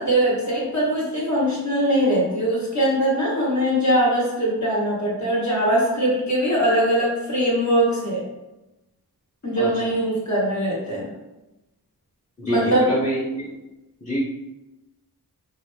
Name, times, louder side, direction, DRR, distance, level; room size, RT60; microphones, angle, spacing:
voice 1, 0.0-8.2 9.4-11.1 12.4-12.9, right 1 dB, 45° left, -6 dB, 1.4 m, -21 dB
voice 2, 12.4-13.4 14.0-14.2, right 1 dB, 15° left, -9 dB, 1.0 m, -26 dB
2.9 x 2.4 x 3.4 m, 0.98 s
wide cardioid pair, 45°, 39 cm